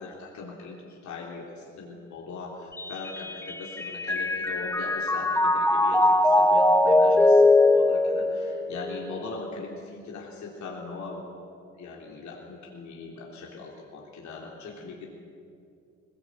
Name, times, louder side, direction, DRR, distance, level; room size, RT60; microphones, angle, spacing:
voice 1, 0.0-11.2 11.8-15.1, left 3 dB, 70° left, -2 dB, 3.5 m, -40 dB
Mallet percussion, 2.8-9.2, left 2 dB, 10° left, 0.9 m, -21 dB
20.5 x 19.0 x 8.4 m, 2.5 s
cardioid pair, 90°, 30 cm